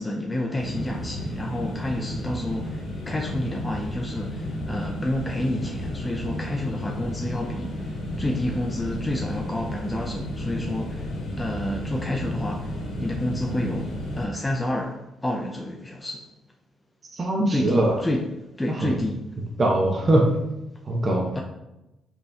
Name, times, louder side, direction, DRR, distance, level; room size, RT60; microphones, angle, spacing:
voice 1, 0.0-16.3 17.5-18.3 18.6-19.2 21.4-21.5, left 1 dB, 15° left, 1 dB, 0.3 m, -29 dB
sound 1, 0.6-14.3, left 1 dB, 80° left, 1.0 m, -32 dB
voice 2, 17.1-18.0 18.7-19.0 19.6-20.3 20.9-21.3, right 1 dB, 35° right, -1 dB, 0.6 m, -21 dB
5.2 x 2.7 x 2.2 m, 0.95 s
cardioid pair, 90°, 0 cm